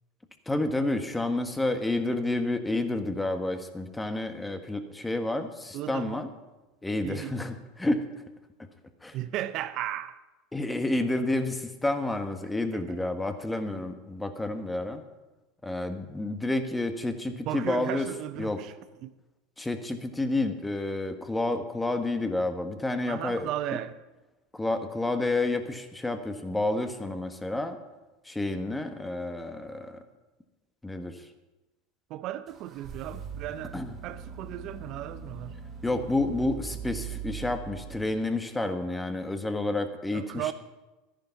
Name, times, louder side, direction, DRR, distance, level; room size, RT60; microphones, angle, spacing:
voice 1, 0.5-6.3 6.8-8.0 9.0-9.2 10.5-15.0 15.6-18.1 18.4-18.6 19.6-23.5 24.5-27.8 28.2-30.0 30.8-31.2 33.7-33.9 35.8-40.5, left 2 dB, 10° left, 1.4 m, -30 dB
voice 2, 5.7-6.3 7.0-7.4 9.1-10.2 12.7-12.8 17.5-18.8 19.0-19.1 23.1-24.0 32.1-35.6 40.1-40.5, right 13 dB, 55° right, 0.6 m, -35 dB
sound 1, 32.5-38.4, right 7 dB, 35° right, 2.7 m, -41 dB
13.0 x 10.5 x 5.7 m
hypercardioid pair, 90°, 0 cm